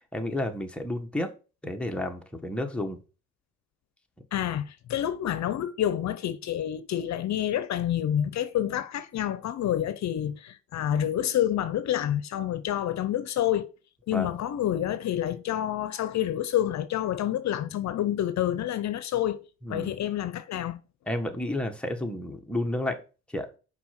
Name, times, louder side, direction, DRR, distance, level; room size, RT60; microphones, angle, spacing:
voice 1, 0.1-1.3 1.6-3.0 14.1-14.3 19.6-19.9 21.1-23.0 23.3-23.5, left 1 dB, 5° left, 1.5 m, -31 dB
voice 2, 4.3-13.7 14.1-19.4 19.7-20.8, left 11 dB, 65° left, 0.7 m, -28 dB
5.9 x 4.7 x 6.0 m
cardioid pair, 90°, 30 cm